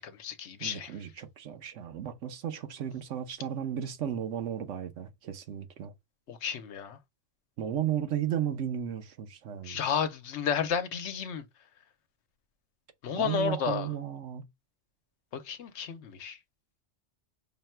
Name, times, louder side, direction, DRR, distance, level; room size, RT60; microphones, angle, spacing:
voice 1, 0.0-0.9 6.3-7.0 9.6-11.4 13.0-13.9 15.3-16.4, left 7 dB, 75° left, 1.0 m, -32 dB
voice 2, 0.6-5.9 7.6-9.8 13.2-14.5, right 9 dB, 90° right, 1.1 m, -34 dB
5.6 x 2.2 x 4.3 m
omnidirectional pair, 1.2 m